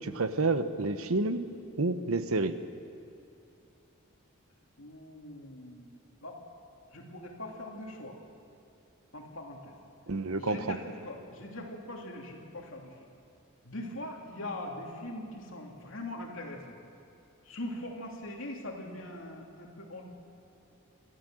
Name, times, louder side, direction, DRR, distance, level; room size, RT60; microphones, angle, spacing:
voice 1, 0.0-1.5 1.8-2.6 10.1-10.8, right 3 dB, 80° right, 11 dB, 1.0 m, -29 dB
voice 2, 4.8-5.9 6.2-6.4 6.9-8.2 9.1-9.7 10.4-12.9 13.6-16.8 17.4-20.0, left 1 dB, 65° left, 0 dB, 3.0 m, -41 dB
26.5 x 13.0 x 7.7 m, 2.7 s
head